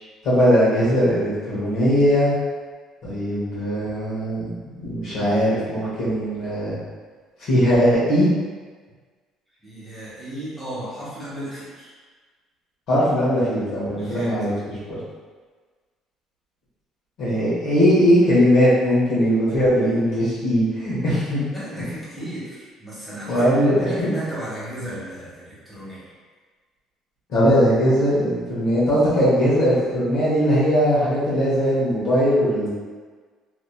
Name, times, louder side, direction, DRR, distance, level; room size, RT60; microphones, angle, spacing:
voice 1, 0.2-2.3 3.0-4.5 4.8-6.8 7.4-8.3 12.9-15.0 17.2-21.4 23.3-24.1 27.3-32.7, equal, 65° left, -8 dB, 1.1 m, -19 dB
voice 2, 9.6-11.9 14.0-14.3 21.4-26.0, right 1 dB, 10° right, -9 dB, 1.2 m, -34 dB
2.8 x 2.6 x 2.2 m, 1.5 s
cardioid pair, 110°, 0 cm